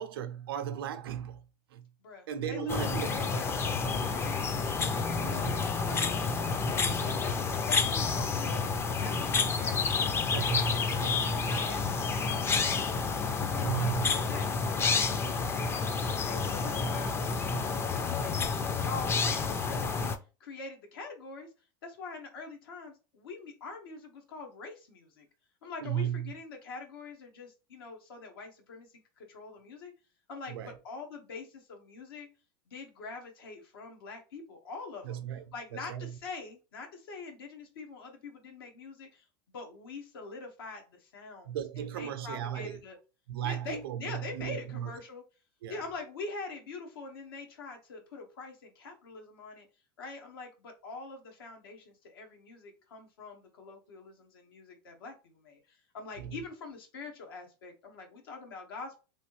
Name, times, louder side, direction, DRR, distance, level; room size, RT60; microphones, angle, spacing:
voice 1, 0.0-1.4 1.7-1.9 2.3-3.2 5.2-5.6 10.3-10.9 13.5-14.2 25.8-26.3 30.5-30.8 35.0-35.4 35.7-36.1 41.5-42.8 43.3-44.9 45.6-45.8 56.2-56.4, right 9 dB, 90° right, 0.6 m, -36 dB
voice 2, 2.0-6.3 6.7-10.2 10.5-11.1 11.4-13.0 13.4-18.3 18.7-20.1 20.4-21.5 21.8-25.3 25.6-29.9 30.3-32.3 32.7-35.2 35.5-43.0 43.4-45.2 45.7-49.7 50.0-59.0, left 4 dB, 85° left, 1.1 m, -44 dB
sound 1, 2.7-20.2, left 4 dB, 20° left, 0.4 m, -29 dB
3.1 x 2.7 x 3.0 m
supercardioid pair, 115°, 12 cm